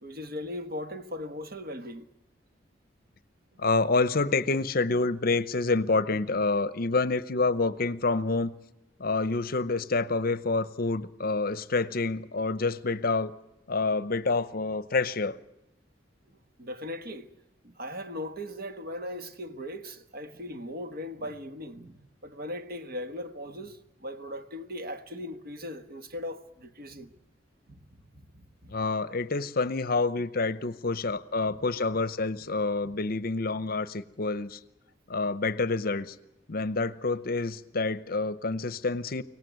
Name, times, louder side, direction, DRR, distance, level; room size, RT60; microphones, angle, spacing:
voice 1, 0.0-2.1 16.6-17.3 17.6-27.1 27.7-28.7 31.5-31.6, left 1 dB, 55° right, 1.4 m, -39 dB
voice 2, 3.6-8.5 9.0-13.3 13.7-15.4 28.7-34.6 35.1-36.2 36.5-39.2, left 3 dB, 50° left, 0.7 m, -27 dB
24.0 x 18.0 x 8.0 m
head